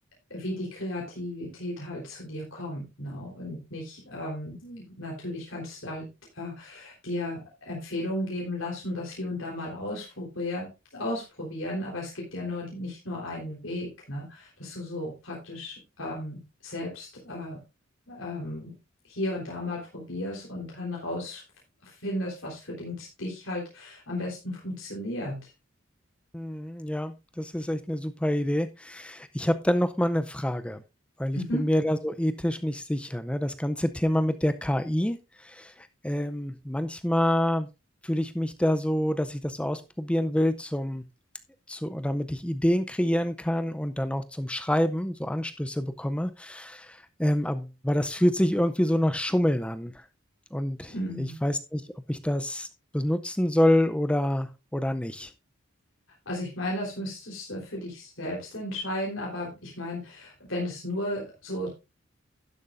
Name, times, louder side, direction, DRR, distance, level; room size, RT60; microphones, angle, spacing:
voice 1, 0.3-6.1 6.3-17.6 18.1-18.7 19.0-21.4 21.8-25.5 31.3-31.7 50.9-51.4 56.3-61.7, left 1 dB, 75° left, -3 dB, 3.8 m, -34 dB
voice 2, 26.3-30.8 31.2-37.7 38.0-41.0 41.7-50.0 50.5-51.8 52.1-52.7 52.9-55.3, left 1 dB, 5° left, 10 dB, 0.5 m, -27 dB
12.0 x 11.0 x 2.5 m, 0.26 s
head